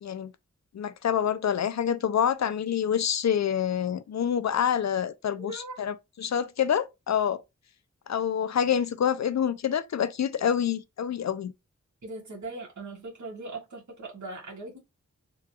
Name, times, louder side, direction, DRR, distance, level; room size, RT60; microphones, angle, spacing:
voice 1, 0.0-0.3 0.7-7.4 8.1-11.5, left 8 dB, 65° left, 0.4 m, -27 dB
voice 2, 5.4-5.8 12.0-14.8, right 2 dB, 70° right, 1.4 m, -39 dB
3.5 x 2.4 x 2.7 m
wide cardioid pair, 105°, 30 cm